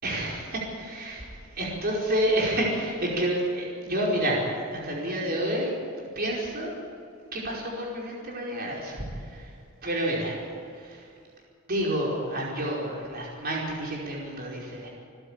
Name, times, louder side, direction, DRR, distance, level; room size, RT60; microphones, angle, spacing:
voice 1, 0.0-5.7 6.1-6.7 7.3-9.5 9.8-10.4 10.7-11.0 11.7-14.9, right 1 dB, 50° right, -3 dB, 5.0 m, -29 dB
27.0 x 12.5 x 8.9 m, 2.4 s
head